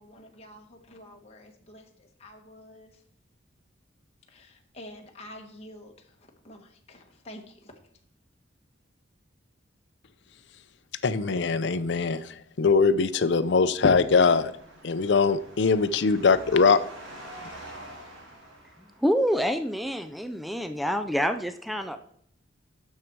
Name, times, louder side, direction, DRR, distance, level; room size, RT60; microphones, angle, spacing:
voice 1, 0.0-3.0 4.3-7.8, left 1 dB, 30° left, 1 dB, 1.2 m, -48 dB
voice 2, 11.0-14.5 14.8-16.8, left 4 dB, 60° left, 11 dB, 0.5 m, -22 dB
sound 1, 13.1-19.4, right 1 dB, 90° right, 2.6 m, -47 dB
voice 3, 19.0-22.0, equal, ahead, 9 dB, 0.3 m, -27 dB
9.3 x 6.5 x 4.5 m, 0.68 s
head